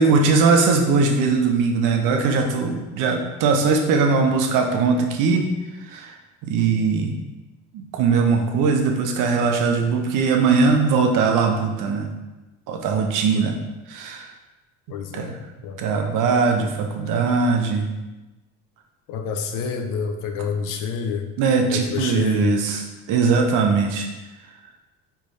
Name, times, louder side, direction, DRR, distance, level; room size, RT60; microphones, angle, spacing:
voice 1, 0.0-5.5 5.8-6.1 6.4-7.1 7.7-12.1 12.7-13.6 13.9-14.3 15.1-15.3 15.8-17.9 20.4-20.5 21.4-24.1, right 4 dB, 65° right, 3 dB, 0.9 m, -20 dB
voice 2, 14.9-15.3 15.6-15.8 19.1-21.3 21.7-22.5, left 5 dB, 65° left, 5 dB, 0.7 m, -28 dB
4.7 x 3.4 x 3.2 m, 1.1 s
supercardioid pair, 85°, 34 cm